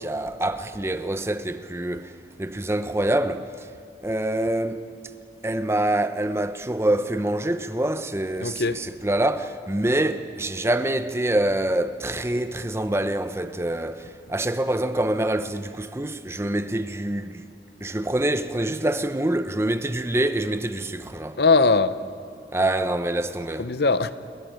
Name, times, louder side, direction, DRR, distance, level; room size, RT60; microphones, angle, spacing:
voice 1, 0.0-2.1 2.4-3.7 4.0-4.9 5.4-17.4 17.8-21.4 22.5-23.7, right 1 dB, 15° right, 0.7 m, -25 dB
voice 2, 8.4-8.9 21.4-22.0 23.6-24.1, left 4 dB, 60° left, 0.8 m, -20 dB
29.5 x 21.5 x 5.2 m
head